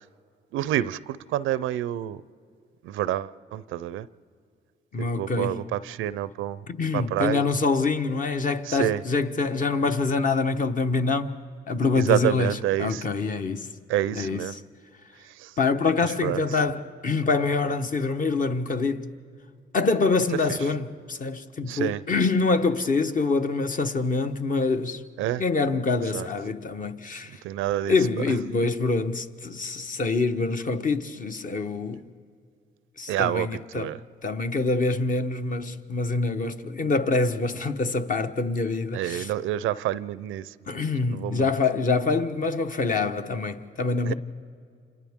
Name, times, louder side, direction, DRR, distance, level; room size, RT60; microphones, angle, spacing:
voice 1, 0.5-2.2 2.8-4.1 5.0-6.6 6.9-7.5 8.7-9.0 11.9-13.0 13.9-14.5 15.4-15.5 16.2-16.4 20.5-20.6 21.7-22.0 25.2-25.4 26.1-26.3 27.4-27.9 33.1-33.5 33.7-34.0 38.9-40.4 41.1-41.5 44.0-44.1, right 13 dB, 90° right, 0.5 m, -27 dB
voice 2, 4.9-5.6 6.7-11.4 11.7-13.7 14.1-14.6 15.6-19.1 19.7-25.0 25.4-27.4 27.9-32.0 33.0-39.3 40.7-44.1, left 3 dB, 45° left, 1.1 m, -25 dB
29.5 x 26.5 x 3.6 m
cardioid pair, 90°, 20 cm